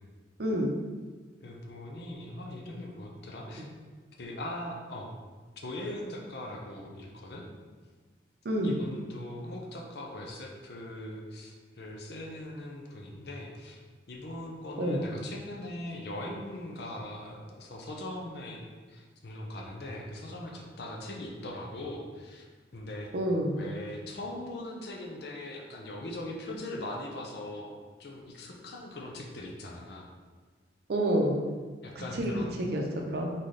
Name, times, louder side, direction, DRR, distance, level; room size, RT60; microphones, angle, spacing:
voice 1, 0.4-0.7 3.6-3.7 8.4-8.8 14.8-15.0 23.1-23.6 30.9-31.4 32.0-32.3 32.6-33.3, right 1 dB, 60° right, 1 dB, 0.6 m, -28 dB
voice 2, 1.4-3.7 4.2-5.1 5.6-7.5 8.6-13.8 14.1-18.6 18.9-22.4 22.7-23.1 23.5-27.7 28.0-30.1 31.8-32.6, left 1 dB, 60° left, 0 dB, 0.6 m, -40 dB
4.1 x 3.9 x 3.2 m, 1.4 s
head